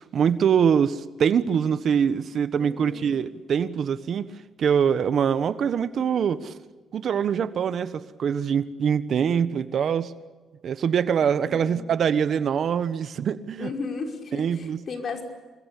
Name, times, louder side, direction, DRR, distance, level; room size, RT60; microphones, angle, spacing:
voice 1, 0.0-4.3 4.6-6.5 6.9-10.1 10.6-13.7 14.3-14.8, right 7 dB, 60° right, 1.3 m, -24 dB
voice 2, 2.6-3.2 11.5-11.9 13.6-15.2, left 4 dB, 55° left, 5.4 m, -35 dB
27.5 x 21.5 x 8.5 m
cardioid pair, 90°, 0 cm